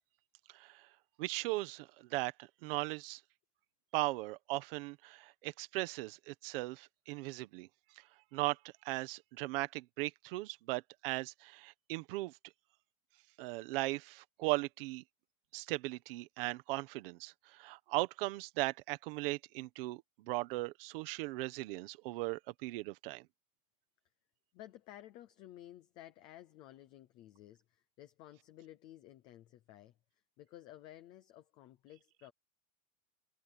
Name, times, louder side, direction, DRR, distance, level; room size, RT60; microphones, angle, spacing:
voice 1, 0.5-0.9 1.2-3.2 3.9-7.7 8.3-8.6 8.8-12.4 13.4-15.0 15.5-23.2, right 21 dB, 40° right, 1.4 m, -38 dB
voice 2, 24.5-29.9 30.4-32.3, left 13 dB, 10° left, 0.4 m, -54 dB
supercardioid pair, 175°, 44 cm